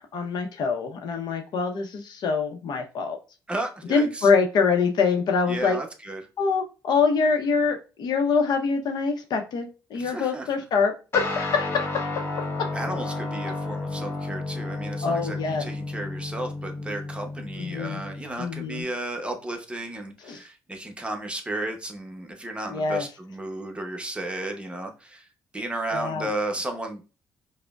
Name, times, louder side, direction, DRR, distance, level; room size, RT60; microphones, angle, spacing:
voice 1, 0.0-3.2 3.9-5.8 6.4-12.3 15.0-15.6 17.6-18.0 18.4-18.8 20.2-20.4 22.7-23.0 25.9-26.3, left 5 dB, 70° left, 5 dB, 0.7 m, -25 dB
voice 2, 3.5-4.3 5.5-6.2 9.9-10.5 12.7-25.3 25.5-27.0, right 1 dB, 15° right, 3 dB, 0.8 m, -33 dB
Guitar, 11.1-18.8, left 2 dB, 30° left, 1.0 m, -32 dB
4.9 x 2.1 x 2.3 m, 0.32 s
cardioid pair, 75°, 8 cm